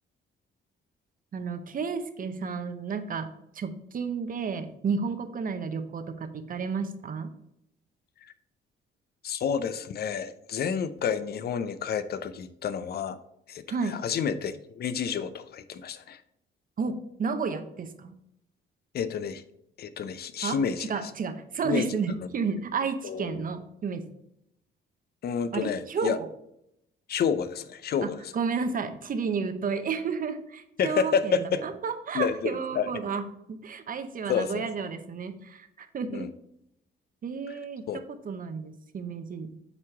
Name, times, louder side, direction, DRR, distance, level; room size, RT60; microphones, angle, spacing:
voice 1, 1.3-3.3 3.5-7.3 13.7-14.0 16.8-18.1 20.4-24.0 25.5-26.3 28.0-36.3 37.2-39.6, right 5 dB, 45° right, 9 dB, 0.8 m, -32 dB
voice 2, 9.2-13.2 13.5-16.2 18.9-19.4 19.8-21.1 21.6-22.3 23.0-23.4 25.2-26.2 27.1-28.3 30.8-31.6 32.1-32.9 34.3-34.7 36.1-36.3 37.5-37.6 37.9-38.0, left 7 dB, 55° left, 12 dB, 0.6 m, -30 dB
8.1 x 2.9 x 4.7 m, 0.78 s
cardioid pair, 90°, 20 cm